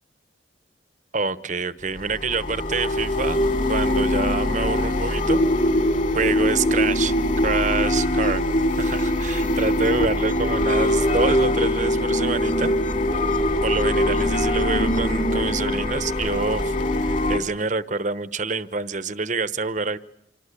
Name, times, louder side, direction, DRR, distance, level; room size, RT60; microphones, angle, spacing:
voice 1, 1.1-3.4 3.7-5.4 6.1-8.4 8.8-12.8 13.6-20.0, right 4 dB, 40° right, 13 dB, 1.0 m, -27 dB
sound 1, 2.0-17.4, left 1 dB, 40° left, 3.1 m, -22 dB
26.5 x 24.5 x 8.4 m, 0.77 s
head